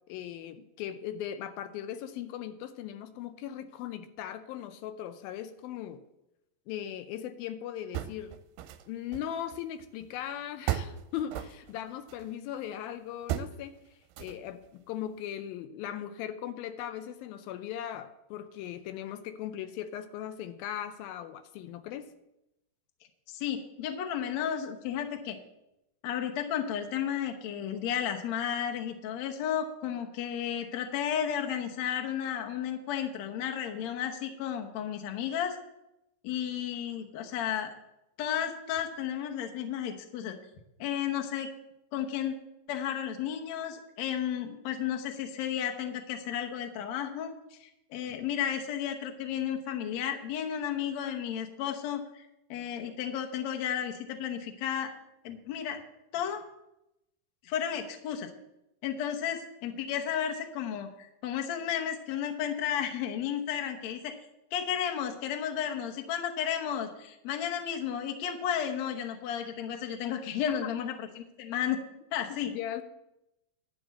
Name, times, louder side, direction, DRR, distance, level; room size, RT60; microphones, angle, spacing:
voice 1, 0.1-6.0 6.7-8.3 8.9-13.8 14.2-22.1 70.5-70.6 72.3-72.8, left 10 dB, 85° left, 9 dB, 2.4 m, -38 dB
sound 1, 7.9-8.9 9.1-10.2 10.7-12.3 13.3-13.6 14.1-14.7, right 12 dB, 80° right, 2.2 m, -35 dB
voice 2, 23.3-25.4 26.0-35.6 36.2-37.7 38.2-40.4 40.8-41.5 41.9-42.3 42.7-52.2 52.5-54.9 55.2-55.8 56.1-56.4 57.4-58.3 58.8-64.2 64.5-71.8 72.1-72.5, left 9 dB, 65° left, 4 dB, 1.9 m, -33 dB
11.5 x 5.2 x 8.3 m, 0.88 s
omnidirectional pair, 4.2 m